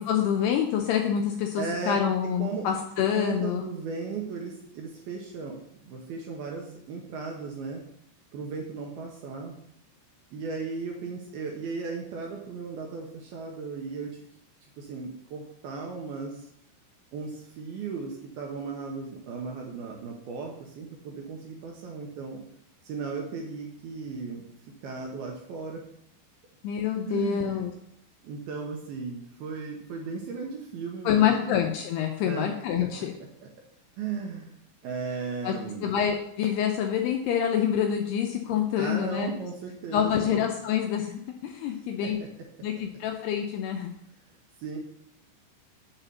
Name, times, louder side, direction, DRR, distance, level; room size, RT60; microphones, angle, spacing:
voice 1, 0.1-3.6 26.6-27.7 31.1-33.1 35.4-35.5 35.8-39.3 39.9-42.2 42.6-43.9, left 9 dB, 85° left, 3 dB, 2.4 m, -26 dB
voice 2, 1.6-2.7 3.1-7.8 8.3-9.6 10.3-14.2 14.8-16.5 17.1-22.4 22.8-24.4 24.8-25.8 27.1-27.7 28.2-31.6 32.2-32.5 34.0-34.5 34.8-35.9 38.8-40.4 41.7-42.1 44.6-44.8, right 4 dB, 75° right, 0 dB, 2.4 m, -36 dB
7.3 x 4.9 x 6.7 m, 0.74 s
omnidirectional pair, 5.3 m